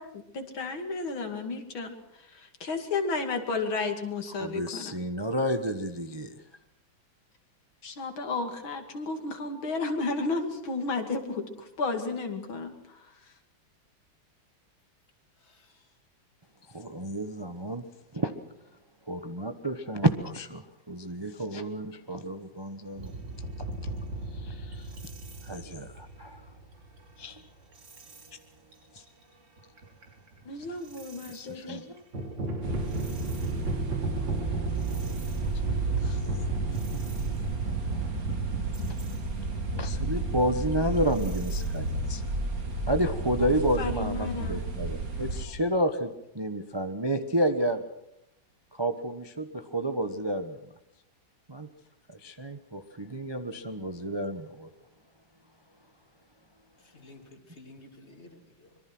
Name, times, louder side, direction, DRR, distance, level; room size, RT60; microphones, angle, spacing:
voice 1, 0.0-1.9 2.3-5.0 7.8-13.1 30.5-31.8 43.4-43.5 43.8-44.6, left 3 dB, 75° left, 5 dB, 3.2 m, -33 dB
voice 2, 4.4-6.3 16.7-17.8 18.1-18.3 19.1-23.1 24.3-24.9 25.4-26.5 27.2-27.4 28.3-28.4 28.9-29.0 31.3-32.0 34.9-36.4 39.7-42.3 42.9-47.8 48.7-50.6 51.5-51.7 52.1-54.7, right 1 dB, 20° right, 7 dB, 0.8 m, -31 dB
voice 3, 15.4-15.9 56.8-58.8, left 2 dB, 30° left, 6 dB, 2.9 m, -53 dB
sound 1, 22.9-27.2 27.7-28.3 28.7-29.1 29.6-31.4 32.0-42.7, right 2 dB, 65° right, 3.8 m, -36 dB
sound 2, 32.6-45.5, right 3 dB, 45° right, 2.9 m, -32 dB
25.0 x 23.0 x 6.1 m, 0.80 s
omnidirectional pair, 2.2 m